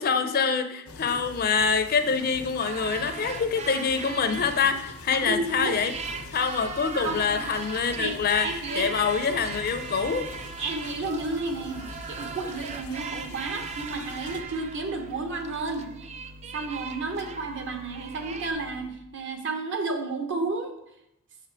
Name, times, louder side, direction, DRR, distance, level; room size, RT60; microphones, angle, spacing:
voice 1, 0.0-5.9 6.3-8.5 8.8-10.3, left 5 dB, 45° left, 8 dB, 0.5 m, -25 dB
sound 1, 0.9-14.4, left 3 dB, 90° left, 0.7 m, -44 dB
sound 2, 2.6-5.1 5.5-18.5, right 5 dB, 30° right, 0.4 m, -39 dB
voice 2, 5.1-5.7 6.9-7.2 8.0-8.9 10.6-15.9 16.5-20.8, right 3 dB, 55° right, 4 dB, 1.0 m, -32 dB
sound 3, 5.9-18.9, equal, 85° right, 0.8 m, -48 dB
6.1 x 5.0 x 4.6 m, 0.81 s
head